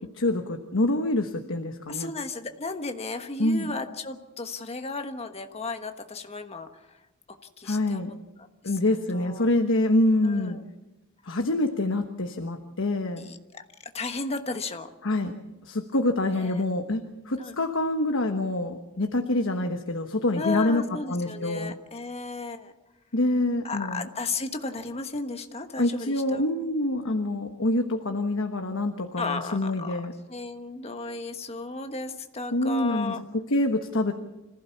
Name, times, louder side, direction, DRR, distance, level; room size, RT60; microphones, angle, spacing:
voice 1, 0.1-2.1 3.4-3.7 7.6-8.1 8.6-10.6 11.3-13.3 15.0-15.4 15.6-20.8 21.1-21.8 23.1-24.1 25.8-30.1 32.5-34.1, left 1 dB, 60° left, 5 dB, 1.2 m, -26 dB
voice 2, 1.9-6.7 7.6-8.1 9.1-9.5 10.2-10.6 13.2-13.6 13.9-14.9 16.4-16.5 17.4-17.5 20.4-22.7 23.6-26.4 27.0-27.1 29.2-30.0 30.3-33.2, left 3 dB, 30° left, 6 dB, 1.3 m, -34 dB
25.5 x 15.5 x 7.2 m, 1.0 s
head